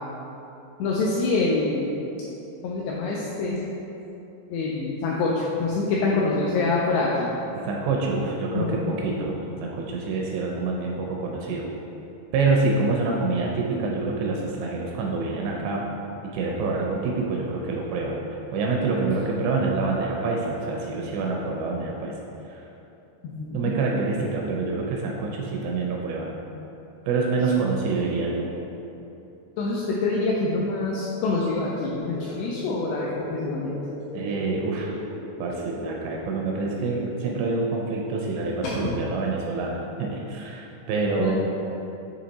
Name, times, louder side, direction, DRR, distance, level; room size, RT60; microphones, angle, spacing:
voice 1, 0.8-1.9 2.6-3.6 4.5-7.3 8.5-8.9 23.2-23.7 29.6-33.8 38.6-38.7 41.2-41.3, left 3 dB, 85° left, -4 dB, 2.3 m, -25 dB
voice 2, 7.7-11.7 12.3-15.8 16.2-18.2 18.5-22.1 22.4-22.6 23.5-26.4 27.1-28.5 34.1-35.0 35.4-41.3, right 3 dB, 85° right, -1 dB, 2.5 m, -26 dB
sound 1, 32.0-37.3, equal, 65° left, 1.5 m, -38 dB
7.8 x 3.1 x 4.0 m, 3.0 s
omnidirectional pair, 5.3 m